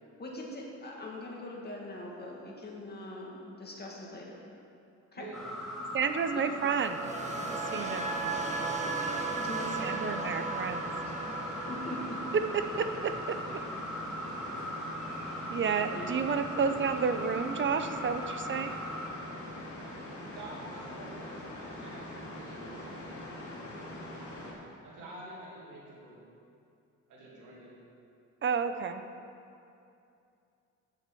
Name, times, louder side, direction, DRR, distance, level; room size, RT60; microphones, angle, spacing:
voice 1, 0.2-4.4 5.1-5.3 6.3-6.4 9.4-10.2 11.5-12.2 15.9-16.2, left 1 dB, 35° left, -2 dB, 2.1 m, -42 dB
voice 2, 5.2-5.5 20.3-23.6 24.1-24.2 24.8-26.2 27.1-27.8, right 2 dB, 80° right, -6 dB, 2.5 m, -48 dB
sound 1, 5.3-19.1, equal, ahead, 2.6 m, -40 dB
voice 3, 5.9-7.1 7.5-8.1 9.8-10.8 12.5-13.6 15.5-18.7 28.4-29.0, right 6 dB, 40° right, 9 dB, 0.6 m, -31 dB
sound 2, 6.6-14.7 15.0-15.3, right 4 dB, 25° right, 1.0 m, -37 dB
sound 3, 7.1-24.5, left 1 dB, 70° left, 2.6 m, -43 dB
7.3 x 6.6 x 7.6 m, 2.6 s
cardioid pair, 90°, 30 cm